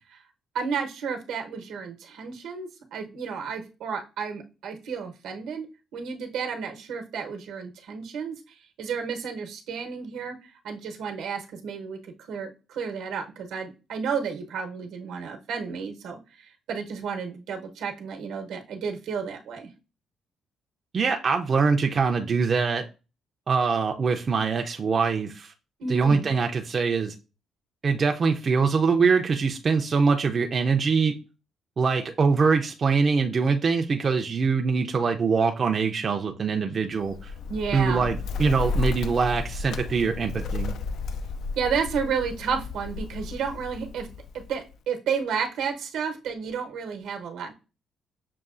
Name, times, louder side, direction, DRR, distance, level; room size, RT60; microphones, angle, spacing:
voice 1, 0.5-5.7 5.9-10.4 10.6-12.0 12.3-19.7 25.8-26.3 37.5-38.1 41.6-44.1 44.3-47.5, right 6 dB, 85° right, 0.9 m, -32 dB
voice 2, 20.9-22.8 23.5-25.5 25.9-27.1 27.8-31.2 31.8-37.3 37.7-40.8, right 5 dB, 40° right, 0.4 m, -23 dB
Bird, 37.0-44.8, left 4 dB, 75° left, 0.3 m, -33 dB
6.5 x 2.3 x 2.4 m
cardioid pair, 90°, 0 cm